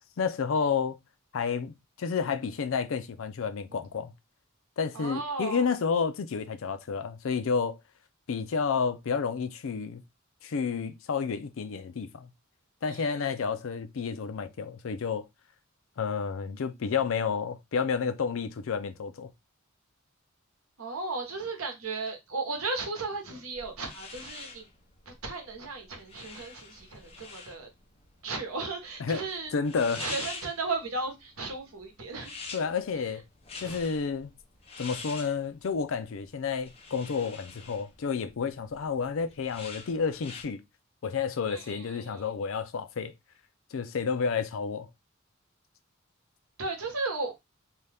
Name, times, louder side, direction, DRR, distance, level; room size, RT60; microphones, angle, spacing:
voice 1, 0.2-1.0 1.3-4.1 4.8-7.8 8.3-10.0 10.4-12.3 12.8-15.3 16.0-19.3 29.0-29.3 29.5-30.0 32.5-33.2 33.6-34.3 34.8-40.6 41.0-43.1 43.7-44.9, left 5 dB, 70° left, 0.4 m, -30 dB
voice 2, 4.9-5.6 12.9-13.2 20.8-24.7 25.1-27.7 28.2-29.5 30.0-32.3 33.6-33.8 41.5-42.3 46.6-47.3, right 3 dB, 85° right, 1.0 m, -35 dB
sound 1, 23.5-40.4, left 4 dB, 30° left, 0.7 m, -46 dB
2.7 x 2.3 x 3.3 m
head